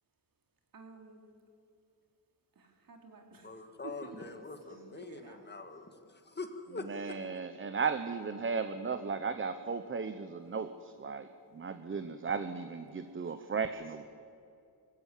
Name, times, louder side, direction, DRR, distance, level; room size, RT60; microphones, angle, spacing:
voice 1, 0.7-1.2 2.6-5.4 10.4-10.5 12.9-13.2, right 3 dB, 50° right, 3 dB, 3.5 m, -52 dB
voice 2, 3.4-6.8, left 3 dB, 25° left, 7 dB, 1.6 m, -44 dB
voice 3, 6.7-14.0, right 5 dB, 30° right, 10 dB, 0.9 m, -36 dB
23.5 x 16.0 x 9.9 m, 2.5 s
wide cardioid pair, 145°, 43 cm